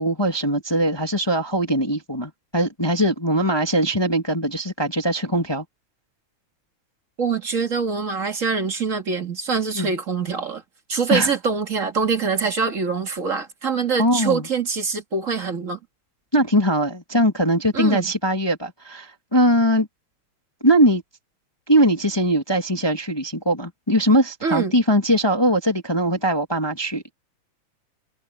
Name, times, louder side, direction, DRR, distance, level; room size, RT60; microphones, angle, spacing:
voice 1, 0.0-5.6 9.7-9.9 11.1-11.3 14.0-14.5 16.3-19.9 20.6-21.0 21.7-27.1, equal, 10° left, 1.5 m, -21 dB
voice 2, 7.2-10.6 10.9-15.8 17.7-18.1 24.4-24.8, right 5 dB, 30° right, 1.9 m, -24 dB
omnidirectional pair, 3.4 m